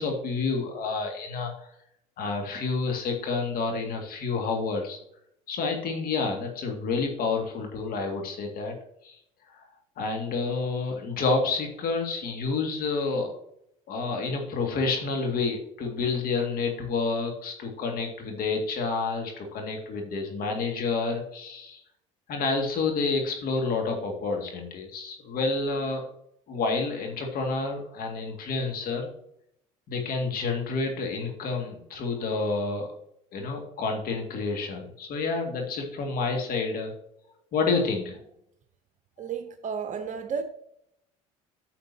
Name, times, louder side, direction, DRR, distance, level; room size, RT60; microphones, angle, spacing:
voice 1, 0.0-1.7 2.2-5.0 5.5-8.7 9.0-9.2 9.5-9.7 10.0-13.3 13.9-21.8 22.3-26.0 26.5-29.1 29.9-32.9 33.3-36.9 37.5-38.2, left 4 dB, 55° left, 2.1 m, -29 dB
voice 2, 39.2-40.4, right 6 dB, 45° right, 0.8 m, -32 dB
9.6 x 7.2 x 2.8 m
hypercardioid pair, 75°, 18 cm